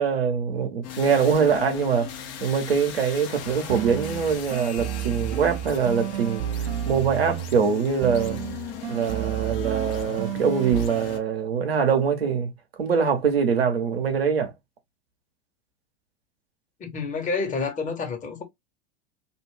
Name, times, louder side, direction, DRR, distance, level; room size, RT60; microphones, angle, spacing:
voice 1, 0.0-2.1 2.4-8.4 8.9-12.5 12.8-14.5, right 6 dB, 80° right, 0.9 m, -23 dB
sound 1, 0.8-11.2, left 10 dB, 50° left, 0.9 m, -39 dB
sound 2, 3.7-7.7 8.0-10.9, right 12 dB, 60° right, 0.5 m, -31 dB
voice 2, 16.8-18.4, left 4 dB, 25° left, 1.1 m, -29 dB
2.7 x 2.5 x 3.2 m
figure-of-eight pair, 85°, 30 cm